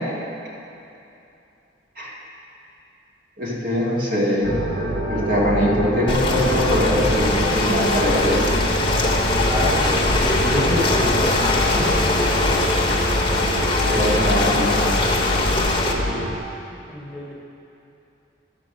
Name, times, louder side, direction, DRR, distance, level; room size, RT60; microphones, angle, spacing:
voice 1, 3.4-4.5 5.1-8.4 11.7-11.9 13.7-15.0, equal, 50° right, -5 dB, 2.0 m, -22 dB
sound 1, 4.4-16.4, equal, 85° right, 1.2 m, -25 dB
Ocean, 6.1-15.9, left 2 dB, 25° left, 1.0 m, -22 dB
voice 2, 9.5-12.3 16.9-17.3, left 1 dB, 5° right, -6 dB, 1.3 m, -27 dB
12.5 x 5.1 x 6.4 m, 2.8 s
head